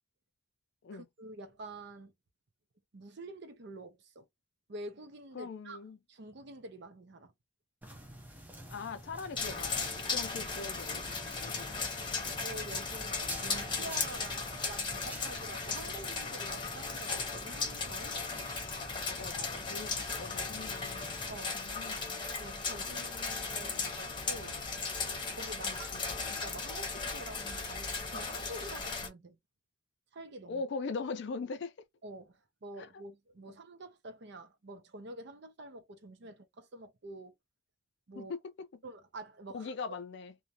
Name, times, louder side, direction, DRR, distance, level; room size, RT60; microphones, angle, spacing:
voice 1, 0.9-2.1 2.9-4.3 4.7-5.8 6.1-7.3 12.4-18.2 21.3-21.6 22.4-24.6 25.4-25.9 26.3-29.4 30.1-30.6 32.0-37.3 38.1-38.3 38.8-39.7, right 2 dB, 60° right, 0.6 m, -47 dB
voice 2, 5.3-6.0 8.7-11.8 18.9-21.2 21.5-22.3 25.6-26.0 30.5-31.7 32.8-33.0 38.2-38.7 39.5-40.3, left 4 dB, 60° left, 0.4 m, -41 dB
sound 1, 7.8-21.4, right 1 dB, 10° right, 0.6 m, -50 dB
sound 2, 9.4-29.1, left 4 dB, 25° left, 0.9 m, -37 dB
2.5 x 2.2 x 2.8 m
head